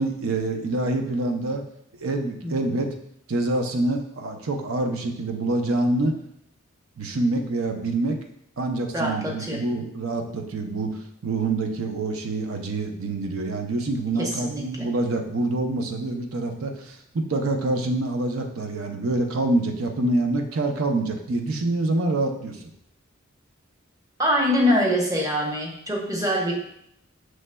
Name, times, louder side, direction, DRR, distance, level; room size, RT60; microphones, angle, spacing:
voice 1, 0.0-1.6 2.0-2.9 3.3-6.2 7.0-8.2 8.6-10.9 11.2-22.6, right 2 dB, 80° right, 4 dB, 0.6 m, -26 dB
voice 2, 2.4-2.8 8.9-9.6 14.2-14.9 24.2-26.6, equal, 15° right, -2 dB, 0.8 m, -24 dB
6.2 x 3.2 x 2.2 m, 0.73 s
head